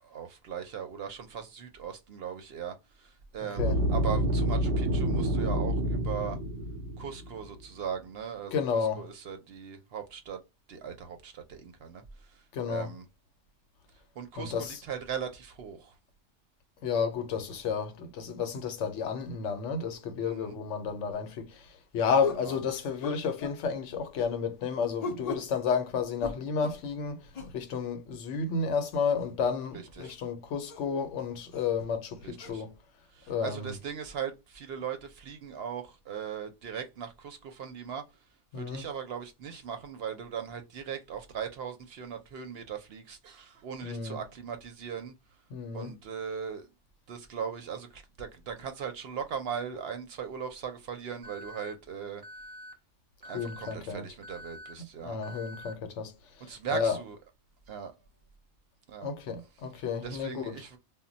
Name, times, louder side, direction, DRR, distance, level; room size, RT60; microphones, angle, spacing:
voice 1, 0.0-6.4 7.0-8.6 9.0-10.4 10.7-13.0 14.2-16.0 20.2-20.6 22.4-22.6 29.7-30.2 32.2-32.6 33.1-38.0 38.6-45.1 45.7-46.7 47.1-52.2 53.2-55.2 56.4-57.2 57.7-57.9 58.9-59.1 60.0-60.8, right 7 dB, 65° right, 0.7 m, -39 dB
sound 1, 3.6-7.5, equal, 90° right, 0.9 m, -28 dB
voice 2, 8.5-9.1 12.5-12.9 14.4-14.8 16.8-32.7 33.3-33.7 38.5-38.8 43.8-44.2 45.5-45.9 53.3-54.0 55.0-57.0 59.0-60.6, left 6 dB, 75° left, 0.9 m, -32 dB
sound 2, 21.1-21.3 22.2-22.5 23.0-23.6 25.0-25.5 26.2-26.8 27.3-27.6 29.2-29.3 30.0-30.1 30.7-30.8 31.5-31.7 32.4-32.5, left 5 dB, 45° left, 0.5 m, -37 dB
Alarm, 51.2-51.7 52.2-52.7 53.2-53.7 54.2-54.7 55.2-55.7, left 1 dB, 30° right, 0.4 m, -46 dB
2.1 x 2.0 x 3.8 m
omnidirectional pair, 1.2 m